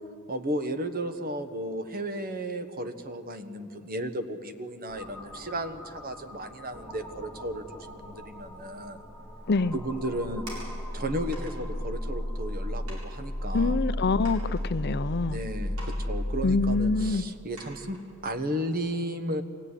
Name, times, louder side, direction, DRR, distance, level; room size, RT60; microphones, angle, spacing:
voice 1, 0.3-9.0 9.7-10.5 10.9-13.8 15.2-19.4, right 1 dB, 45° right, 7 dB, 1.4 m, -34 dB
sound 1, 4.9-17.1, left 1 dB, 5° right, 2.8 m, -35 dB
sound 2, 10.0-11.0 11.3-11.6 12.4-12.5 12.9-13.1 13.7-13.8 14.2-15.2 15.7-16.0 16.3-16.4 17.0-17.1 17.6-18.0 18.5-18.7, right 1 dB, 70° right, 7.7 m, -46 dB
voice 2, 13.5-15.4 16.4-17.2, left 3 dB, 50° left, 14 dB, 0.6 m, -25 dB
23.0 x 16.0 x 9.9 m, 2.5 s
head